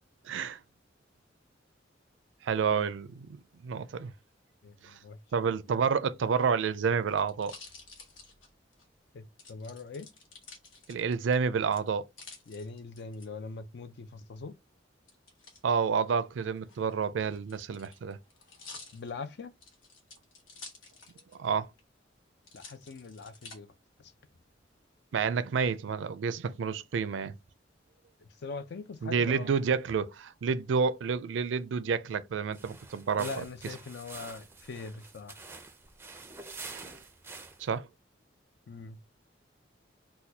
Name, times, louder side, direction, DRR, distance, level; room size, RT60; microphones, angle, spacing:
voice 1, 0.2-0.6 2.4-3.3 3.6-4.1 4.8-5.0 5.3-7.5 10.9-12.1 15.6-18.2 21.4-21.7 25.1-27.3 29.0-33.4 36.7-36.9 37.6-37.9, right 6 dB, 75° right, 0.4 m, -29 dB
voice 2, 4.6-5.5 9.1-10.1 12.5-14.5 18.9-19.5 22.5-23.7 24.0-24.1 28.2-29.5 33.2-35.4 38.7-39.0, left 4 dB, 60° left, 0.5 m, -42 dB
sound 1, 6.5-8.9 9.4-11.3 11.7-13.3 15.1-15.6 16.6-21.5 21.8-21.9 22.4-23.6 24.2-24.7, left 4 dB, 90° left, 1.1 m, -51 dB
sound 2, 32.5-37.8, right 3 dB, 10° right, 0.4 m, -47 dB
4.1 x 2.2 x 2.7 m
head